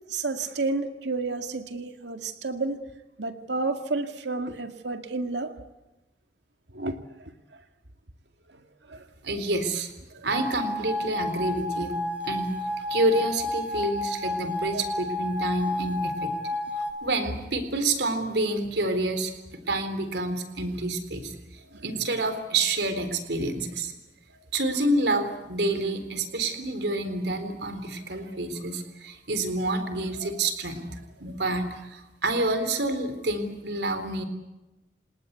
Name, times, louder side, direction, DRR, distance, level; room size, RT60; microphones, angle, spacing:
voice 1, 0.1-2.8 3.2-5.5 6.7-7.0 8.5-8.6 8.9-9.1 10.1-10.3 14.7-14.8 21.7-21.8, right 3 dB, 85° right, 7 dB, 2.1 m, -31 dB
voice 2, 9.2-9.9 10.2-11.9 12.2-12.5 12.9-16.3 16.8-19.3 19.7-23.9 24.3-34.2, right 2 dB, 70° right, 9 dB, 3.9 m, -28 dB
sound 1, 10.3-16.9, left 1 dB, 10° right, 2.3 m, -31 dB
29.5 x 19.0 x 8.2 m, 1.0 s
head